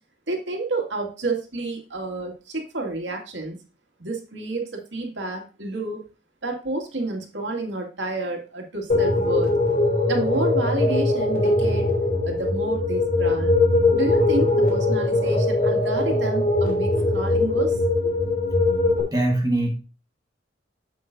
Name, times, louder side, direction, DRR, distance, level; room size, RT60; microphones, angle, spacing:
voice 1, 0.3-3.6 4.0-6.0 6.4-9.5 10.1-11.9 12.3-13.5 13.9-17.8 18.0-18.1, right 2 dB, 90° right, 1 dB, 2.3 m, -30 dB
sound 1, 8.9-19.0, left 2 dB, 50° left, 3.1 m, -21 dB
voice 2, 19.1-19.7, right 1 dB, 20° right, 1 dB, 1.4 m, -22 dB
9.2 x 7.8 x 2.7 m, 0.33 s
head